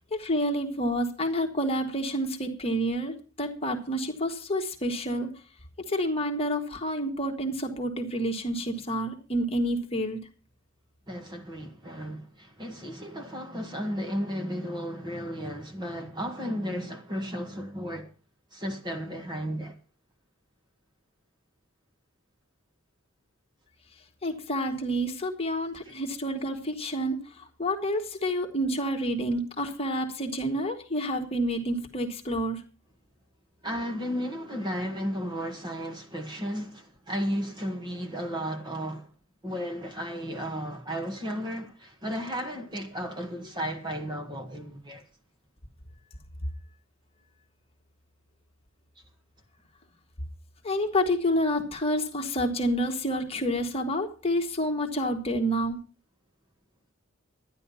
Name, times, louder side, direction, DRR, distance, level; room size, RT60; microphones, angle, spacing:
voice 1, 0.1-5.3 5.9-10.2 24.2-32.6 50.6-55.8, equal, 30° left, 1.6 m, -29 dB
voice 2, 11.1-18.1 18.5-19.8 25.8-26.0 33.6-39.1 39.4-45.0, equal, 20° right, 1.6 m, -34 dB
12.0 x 10.0 x 5.6 m
head